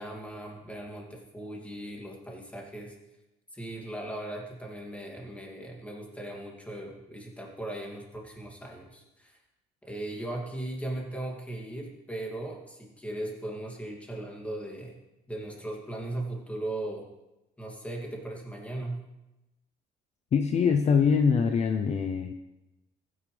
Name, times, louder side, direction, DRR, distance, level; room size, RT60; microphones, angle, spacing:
voice 1, 0.0-3.0 3.5-9.4 9.8-15.0 15.3-17.1 17.6-19.0, right 1 dB, 10° left, -1 dB, 2.6 m, -38 dB
voice 2, 20.3-22.3, left 6 dB, 40° left, 6 dB, 0.7 m, -23 dB
15.0 x 9.7 x 3.4 m, 0.97 s
cardioid pair, 110°, 17 cm